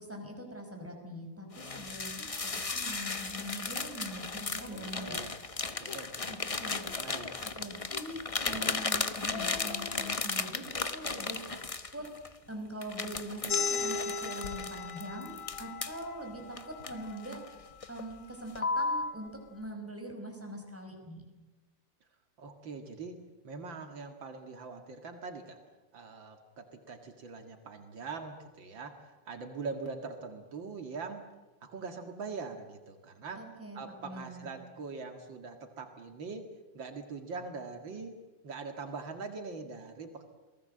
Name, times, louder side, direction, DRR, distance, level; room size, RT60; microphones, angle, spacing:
voice 1, 0.0-5.2 6.3-6.9 7.5-8.2 8.4-11.6 11.9-12.1 12.5-17.4 17.9-21.3 33.4-34.5, right 1 dB, 5° right, 2 dB, 5.2 m, -43 dB
sound 1, 1.5-12.3 12.8-16.0 16.6-17.5 17.8-18.1 18.5-19.1, left 3 dB, 25° left, 0.7 m, -35 dB
voice 2, 4.7-5.4 5.8-7.5 22.4-23.2 23.4-25.6 25.9-31.3 31.6-33.5 33.7-36.5 36.7-38.2 38.4-40.2, right 4 dB, 75° right, 6 dB, 2.7 m, -42 dB
Speech, 5.1-5.3 5.7-6.0 6.4-6.5 6.9-7.5 7.9-8.1 8.4-8.8 9.1-10.2, left 11 dB, 90° left, 1.8 m, -45 dB
sound 2, 13.5-18.7, left 5 dB, 65° left, 2.9 m, -38 dB
28.5 x 19.5 x 7.8 m, 1.2 s
omnidirectional pair, 2.1 m